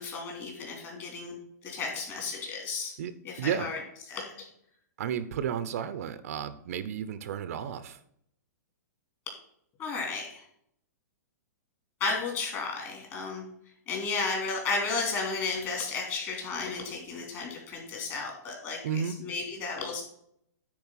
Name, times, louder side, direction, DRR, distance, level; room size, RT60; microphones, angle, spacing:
voice 1, 0.0-1.4 1.6-2.9 3.2-3.8 4.1-4.5 9.8-10.4 12.0-13.4 13.9-20.0, left 4 dB, 25° left, 0 dB, 3.3 m, -33 dB
voice 2, 5.0-8.0 18.8-19.2, right 8 dB, 55° right, 12 dB, 0.8 m, -32 dB
9.5 x 4.7 x 5.7 m, 0.71 s
hypercardioid pair, 155°, 9 cm